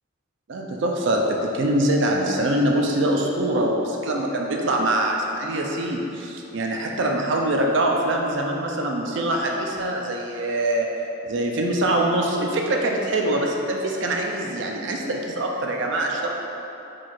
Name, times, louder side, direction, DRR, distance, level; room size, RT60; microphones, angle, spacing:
voice 1, 0.5-10.9 11.3-16.3, right 1 dB, 65° right, 0 dB, 0.4 m, -24 dB
4.6 x 2.4 x 4.2 m, 3.0 s
head